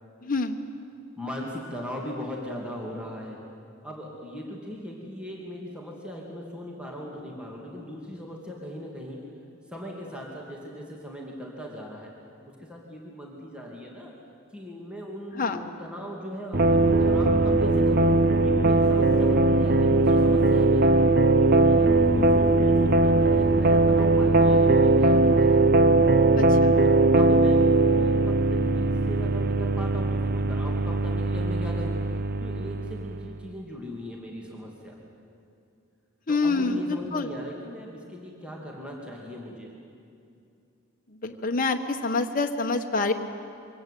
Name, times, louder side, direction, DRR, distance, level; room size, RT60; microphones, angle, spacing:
voice 1, 0.2-0.6 15.4-15.6 26.4-26.8 36.3-37.3 41.2-43.1, left 3 dB, 45° left, 3 dB, 1.3 m, -26 dB
voice 2, 1.2-3.4 3.8-9.2 9.7-12.1 12.5-14.1 14.5-18.1 18.4-21.0 21.4-25.6 26.8-35.0 36.3-39.7, equal, 5° right, -2 dB, 2.7 m, -38 dB
sound 1, 16.5-33.3, right 2 dB, 50° right, 0.9 m, -20 dB
24.0 x 18.0 x 8.4 m, 2.5 s
head